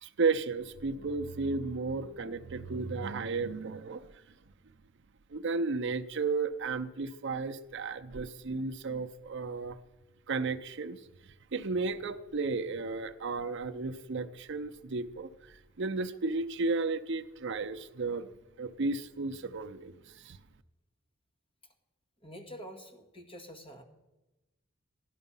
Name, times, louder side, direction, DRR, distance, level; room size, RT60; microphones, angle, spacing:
voice 1, 0.0-4.1 5.3-9.8 10.3-11.0 11.5-18.3 18.6-20.4, right 4 dB, 55° right, 9 dB, 0.6 m, -33 dB
voice 2, 22.2-23.8, equal, 25° left, 3 dB, 1.7 m, -47 dB
15.5 x 11.5 x 5.5 m, 1.0 s
head